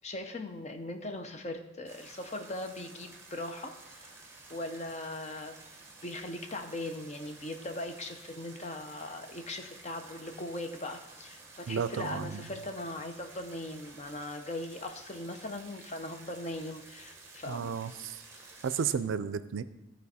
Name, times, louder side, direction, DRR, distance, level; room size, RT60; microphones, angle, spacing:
voice 1, 0.0-4.2 4.5-5.6 6.0-17.7, left 1 dB, 35° left, 6 dB, 0.6 m, -40 dB
sound 1, 1.9-18.9, right 3 dB, 15° right, 1.0 m, -52 dB
voice 2, 11.7-12.5 17.5-18.2 18.6-19.6, right 6 dB, 80° right, 14 dB, 0.4 m, -33 dB
13.0 x 4.4 x 4.2 m, 0.98 s
head